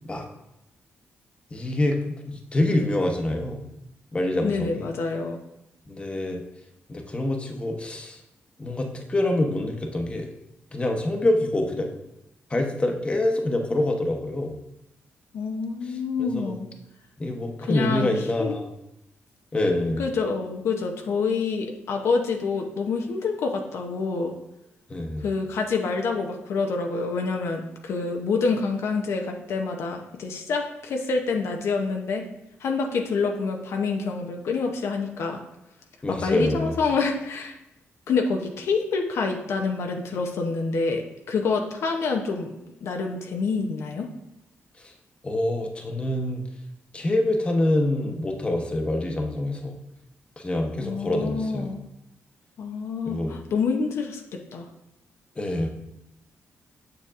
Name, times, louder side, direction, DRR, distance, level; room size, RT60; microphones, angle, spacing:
voice 1, 1.5-3.6 4.1-4.9 5.9-6.4 6.9-8.2 8.6-10.3 10.7-11.9 12.5-14.6 15.8-16.5 17.2-18.7 19.5-20.0 24.9-25.3 36.0-36.7 44.8-44.9 45.2-46.4 46.9-49.7 50.4-51.7 53.1-53.3 55.4-55.7, left 1 dB, 25° left, 3 dB, 0.9 m, -26 dB
voice 2, 4.4-5.4 15.3-16.7 17.6-18.6 20.0-24.3 25.2-32.2 32.6-35.4 36.1-37.6 38.1-42.5 42.8-44.1 50.8-51.8 52.6-54.2 54.5-54.7, left 4 dB, 75° left, 3 dB, 0.7 m, -27 dB
6.8 x 6.7 x 2.4 m, 0.86 s
cardioid pair, 100°, 5 cm